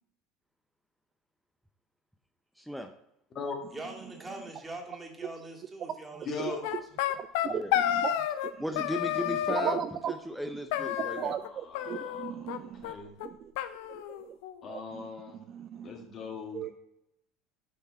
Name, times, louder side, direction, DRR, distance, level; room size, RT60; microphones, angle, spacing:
voice 1, 2.6-2.9 7.5-7.7 8.6-9.8 10.1-11.3, equal, ahead, 5 dB, 0.6 m, -36 dB
voice 2, 3.7-6.6, right 2 dB, 20° right, 1 dB, 1.9 m, -43 dB
voice 3, 6.2-6.6 11.3-13.1 14.6-15.4 15.8-16.7, left 4 dB, 40° left, 2 dB, 1.8 m, -40 dB
sound 1, 6.6-8.5 8.8-9.8 10.7-11.5 11.7-12.6 12.8-12.9 13.2-13.3 13.6-14.6, left 11 dB, 65° left, 0.5 m, -31 dB
voice 4, 7.1-8.4 9.5-10.1 11.1-12.9 13.2-13.5 13.9-14.3 14.7-15.0 15.5-15.9 16.5-16.7, right 9 dB, 45° right, 8 dB, 0.4 m, -36 dB
6.6 x 6.5 x 4.3 m, 0.83 s
figure-of-eight pair, 70°, 0 cm